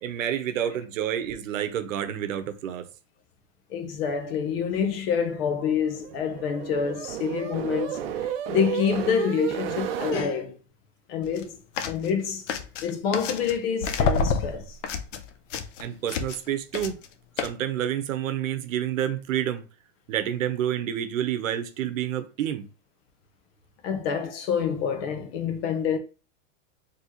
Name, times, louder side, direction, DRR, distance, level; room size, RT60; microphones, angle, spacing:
voice 1, 0.0-2.9 15.8-17.0 17.4-19.6 20.1-22.7, right 10 dB, 85° right, 0.9 m, -29 dB
voice 2, 3.7-8.1 8.5-10.6 11.1-11.6 11.8-12.5 12.8-14.8 23.8-26.0, left 7 dB, 50° left, 0.9 m, -27 dB
sound 1, 5.6-10.3, right 9 dB, 50° right, 0.6 m, -32 dB
sound 2, 11.2-11.4 11.8-12.1 12.5-13.6 13.8-16.5 16.7-17.1 17.4-17.5, left 5 dB, 70° left, 0.8 m, -28 dB
4.2 x 3.0 x 3.0 m
supercardioid pair, 160°, 38 cm